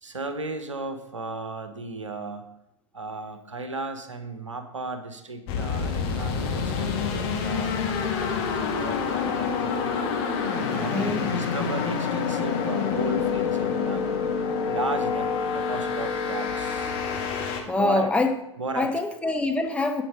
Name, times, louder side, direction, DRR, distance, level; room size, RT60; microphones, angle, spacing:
voice 1, 0.0-2.5 2.9-10.2 10.5-14.1 14.7-17.0 17.8-18.1 18.6-18.9, right 3 dB, 80° right, 8 dB, 1.3 m, -35 dB
sound 1, 5.5-17.6, left 6 dB, 50° left, 2.1 m, -27 dB
voice 2, 10.6-11.3 17.7-18.3 18.8-20.0, left 2 dB, 5° left, 4 dB, 1.1 m, -25 dB
10.5 x 8.4 x 5.0 m, 0.86 s
figure-of-eight pair, 85°, 16 cm